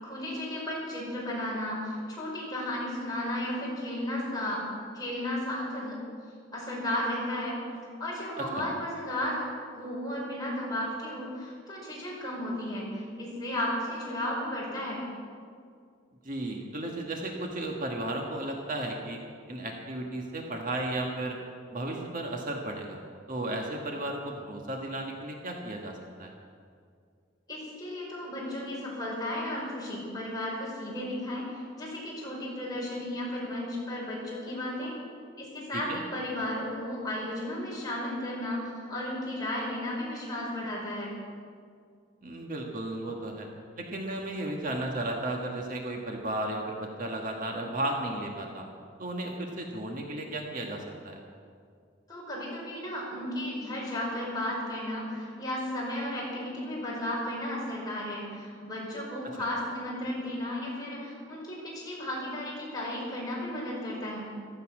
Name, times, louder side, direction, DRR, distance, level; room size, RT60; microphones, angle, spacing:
voice 1, 0.0-4.6 4.9-6.0 6.5-7.6 8.0-9.5 9.7-15.0 27.5-35.0 35.4-41.1 52.1-64.3, left 1 dB, 20° left, -5 dB, 5.3 m, -34 dB
voice 2, 16.2-19.2 19.5-21.4 21.7-23.0 23.3-26.4 35.7-36.0 42.2-43.5 43.8-48.6 49.0-51.2, right 1 dB, 45° right, 1 dB, 1.6 m, -34 dB
15.0 x 14.0 x 6.2 m, 2.2 s
head